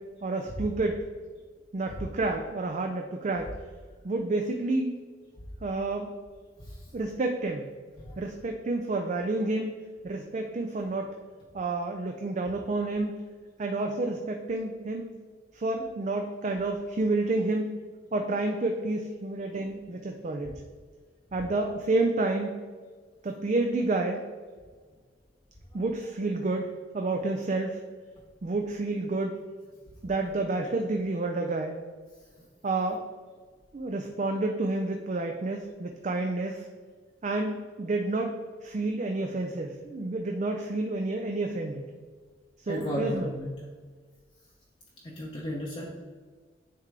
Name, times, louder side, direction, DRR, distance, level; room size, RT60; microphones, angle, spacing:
voice 1, 0.2-1.0 1.7-3.5 4.0-4.9 5.6-6.1 6.9-7.7 8.2-9.8 10.0-11.2 11.5-13.3 13.6-15.1 15.5-17.7 18.1-20.5 21.3-22.5 23.2-24.2 25.7-26.7 26.9-27.8 28.4-29.4 30.0-31.8 32.6-33.0 33.7-36.7 37.2-38.3 38.6-41.9 42.6-43.3, right 2 dB, 40° right, 3 dB, 0.4 m, -29 dB
voice 2, 42.7-43.5 45.0-45.9, equal, 30° left, -4 dB, 0.8 m, -34 dB
9.6 x 3.7 x 3.3 m, 1.5 s
head